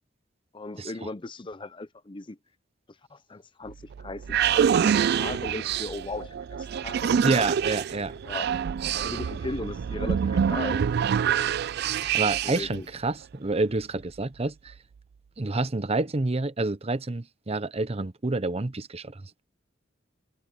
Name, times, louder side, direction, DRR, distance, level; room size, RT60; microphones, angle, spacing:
voice 1, 0.5-2.4 3.1-7.5 8.2-8.6 8.9-10.9 12.4-12.9, left 2 dB, 25° left, 0.6 m, -37 dB
sound 1, 3.7-12.8, right 8 dB, 55° right, 0.3 m, -26 dB
voice 2, 7.2-8.1 12.0-14.7 15.4-19.4, right 2 dB, 30° right, 0.8 m, -28 dB
head